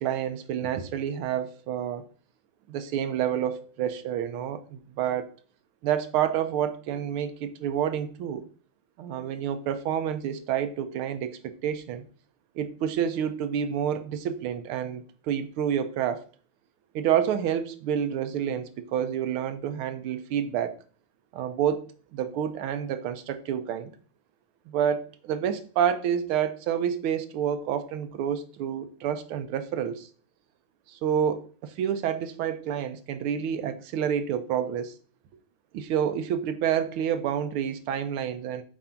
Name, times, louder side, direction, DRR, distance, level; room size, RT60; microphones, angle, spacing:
voice 1, 0.0-2.0 2.7-5.3 5.8-8.4 9.0-12.0 12.5-16.2 16.9-20.7 21.3-21.8 22.1-23.9 24.7-30.1 30.9-34.9 35.7-38.6, right 9 dB, 75° right, 10 dB, 1.6 m, -28 dB
7.3 x 2.7 x 5.7 m, 0.41 s
omnidirectional pair, 2.4 m